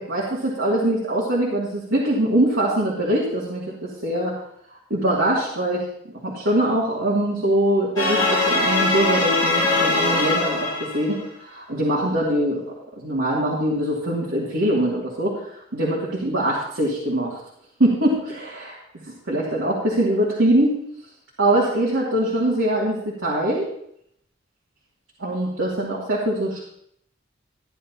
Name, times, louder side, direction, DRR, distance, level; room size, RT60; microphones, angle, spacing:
voice 1, 0.1-4.4 4.9-5.9 6.2-12.6 13.0-15.4 15.7-17.4 17.8-20.8 21.4-23.7 25.2-26.6, right 1 dB, 90° right, -6 dB, 2.5 m, -23 dB
sound 1, 8.0-11.2, left 2 dB, 20° left, 2.9 m, -21 dB
14.0 x 10.0 x 2.9 m, 0.71 s
head